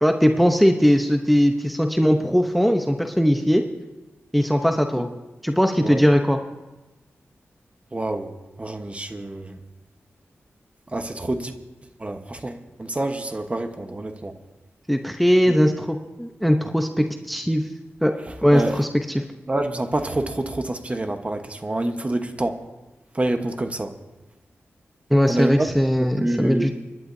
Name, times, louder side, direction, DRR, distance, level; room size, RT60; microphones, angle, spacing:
voice 1, 0.0-3.6 4.3-5.1 5.4-6.4 14.9-17.6 18.0-18.1 18.4-18.9 25.1-26.7, equal, ahead, 5 dB, 0.8 m, -19 dB
voice 2, 7.9-9.6 10.9-11.5 12.0-14.4 15.5-15.6 18.3-18.8 19.5-22.6 23.1-23.9 25.3-25.7 26.0-26.7, right 1 dB, 25° right, 6 dB, 1.1 m, -27 dB
28.5 x 11.0 x 2.7 m, 1.1 s
cardioid pair, 70°, 5 cm